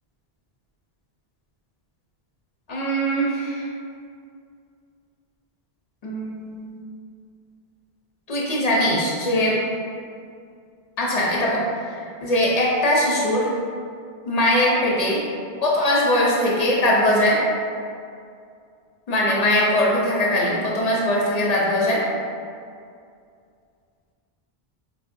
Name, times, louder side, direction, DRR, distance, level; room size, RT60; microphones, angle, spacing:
voice 1, 2.7-3.7 6.0-6.8 8.3-9.6 11.0-13.5 14.2-15.2 15.6-17.4 19.1-22.0, left 1 dB, 45° left, -4 dB, 0.6 m, -21 dB
4.4 x 2.0 x 2.5 m, 2.3 s
omnidirectional pair, 1.1 m